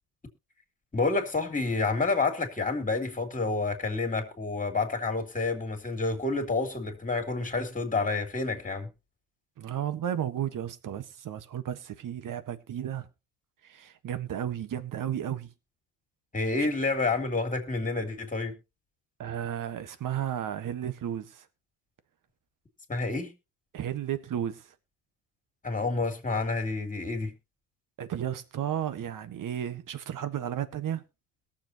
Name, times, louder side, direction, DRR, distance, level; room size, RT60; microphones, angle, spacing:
voice 1, 0.9-8.9 16.3-18.5 22.9-23.3 25.6-27.3, left 3 dB, 20° left, 3.1 m, -29 dB
voice 2, 9.6-13.1 13.6-15.5 16.6-16.7 19.2-21.5 23.7-24.7 28.0-31.0, right 10 dB, 45° right, 1.5 m, -33 dB
21.5 x 7.3 x 3.0 m
hypercardioid pair, 60°, 43 cm